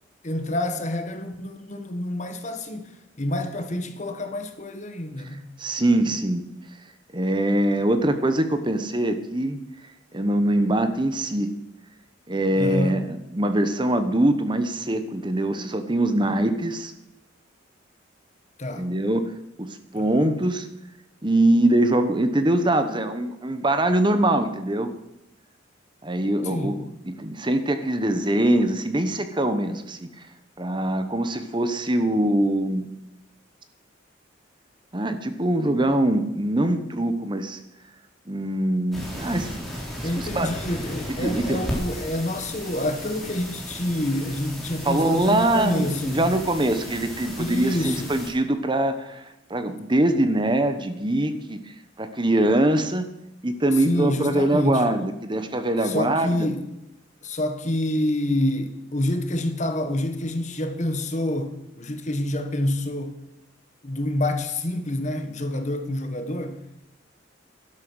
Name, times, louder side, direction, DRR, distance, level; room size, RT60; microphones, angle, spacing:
voice 1, 0.2-2.9 3.2-5.5 12.6-13.0 18.6-18.9 19.9-20.3 26.4-26.8 40.0-46.3 47.4-48.2 53.8-54.9 55.8-56.7 57.2-63.2 63.8-66.6, left 1 dB, 40° left, 1.5 m, -27 dB
voice 2, 5.6-6.5 7.1-9.6 10.1-11.5 12.3-16.9 18.8-19.2 19.6-20.7 21.2-24.9 26.0-26.8 27.1-30.3 30.6-32.9 34.9-37.6 38.3-39.7 40.2-40.5 41.2-41.6 44.8-51.6 52.0-53.1 53.4-56.5, right 1 dB, 25° right, 1.0 m, -23 dB
sound 1, 38.9-48.3, equal, ahead, 3.9 m, -35 dB
12.0 x 11.0 x 6.3 m
head